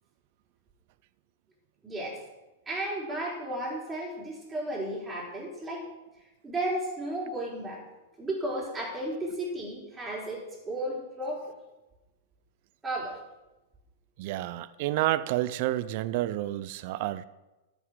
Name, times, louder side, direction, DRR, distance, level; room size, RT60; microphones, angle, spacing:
voice 1, 1.8-2.2 2.7-5.9 6.4-7.8 8.2-11.5 12.8-13.2, right 1 dB, 15° right, 4.4 m, -34 dB
voice 2, 14.2-17.2, right 15 dB, 55° right, 0.6 m, -29 dB
13.5 x 6.8 x 6.3 m
hypercardioid pair, 105°, 0 cm